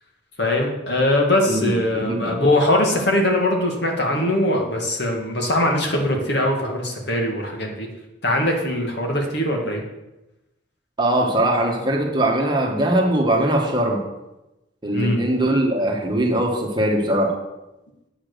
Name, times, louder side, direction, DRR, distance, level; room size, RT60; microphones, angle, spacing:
voice 1, 0.4-7.9 8.2-9.8 14.9-15.2, left 1 dB, 60° left, 1 dB, 2.1 m, -21 dB
voice 2, 1.5-2.4 11.0-14.0 14.8-17.3, right 1 dB, 25° right, 1 dB, 1.5 m, -21 dB
9.0 x 7.2 x 6.8 m, 0.98 s
head